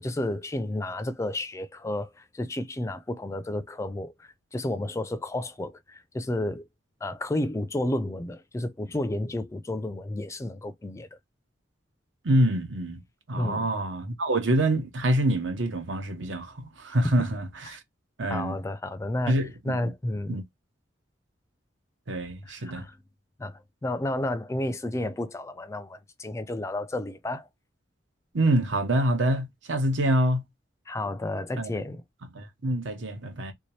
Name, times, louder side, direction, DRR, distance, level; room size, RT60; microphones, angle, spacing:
voice 1, 0.0-6.7 7.0-11.2 13.4-13.7 17.0-17.3 17.6-17.8 18.3-19.4 19.6-20.4 22.5-23.0 23.4-27.5 30.9-32.0, left 1 dB, 15° left, 0.3 m, -31 dB
voice 2, 12.2-13.0 13.3-17.8 18.2-18.6 19.3-19.8 20.3-20.4 22.1-22.8 28.3-30.4 31.6-31.7 32.3-33.5, right 1 dB, 80° right, 1.0 m, -26 dB
3.4 x 2.7 x 3.1 m
head